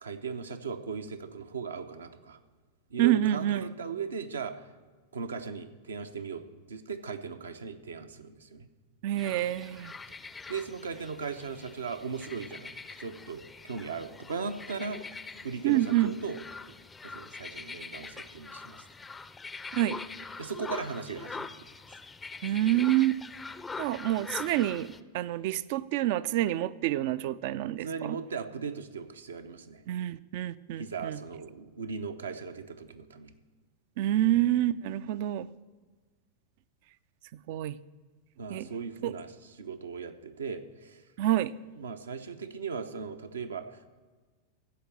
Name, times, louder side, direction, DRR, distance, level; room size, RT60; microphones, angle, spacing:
voice 1, 0.0-2.4 2.9-4.5 5.1-8.7 10.5-12.7 13.0-15.0 15.4-16.4 17.0-18.8 20.4-21.7 27.8-29.8 30.8-33.3 38.4-41.0 41.8-43.8, right 5 dB, 70° right, 8 dB, 0.7 m, -38 dB
voice 2, 3.0-3.6 9.0-9.9 15.6-16.1 19.7-20.0 22.4-23.2 23.8-24.9 25.1-27.9 29.9-31.2 34.0-35.5 37.5-37.8 38.5-38.7 39.0-39.1 41.2-41.5, right 14 dB, 50° right, 17 dB, 0.4 m, -27 dB
sound 1, 9.2-25.0, left 4 dB, 15° left, 0.5 m, -43 dB
15.0 x 5.2 x 7.4 m, 1.4 s
figure-of-eight pair, 90°, 0 cm